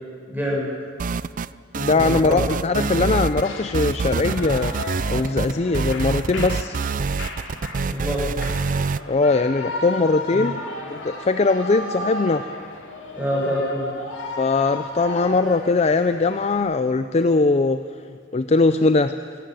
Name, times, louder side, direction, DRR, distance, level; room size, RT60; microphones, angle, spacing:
voice 1, 0.3-0.7 1.9-2.4 2.7-3.2 7.8-8.3 10.3-10.5 13.1-13.9, equal, 10° right, -4 dB, 6.9 m, -26 dB
sound 1, 1.0-1.5 1.7-3.5 3.7-9.0, right 4 dB, 45° right, 0.4 m, -26 dB
voice 2, 1.7-4.8 5.1-6.8 9.1-10.5 10.9-12.4 14.4-17.8 18.3-19.2, left 3 dB, 35° left, 10 dB, 0.5 m, -20 dB
Shout / Cheering, 2.7-16.6, left 2 dB, 75° left, 2.8 m, -34 dB
24.0 x 13.0 x 9.3 m, 2.1 s
head